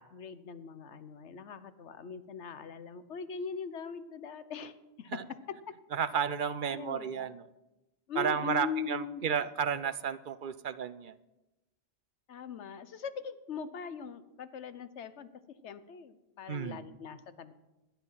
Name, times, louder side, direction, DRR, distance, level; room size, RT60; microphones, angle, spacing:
voice 1, 0.0-5.1 6.7-7.3 8.1-9.2 12.3-15.3 15.6-17.5, left 6 dB, 80° left, 13 dB, 1.2 m, -41 dB
voice 2, 5.9-7.5 8.2-11.2 16.5-16.9, right 7 dB, 55° right, 15 dB, 0.7 m, -32 dB
17.5 x 11.5 x 5.7 m, 1.0 s
omnidirectional pair, 1.2 m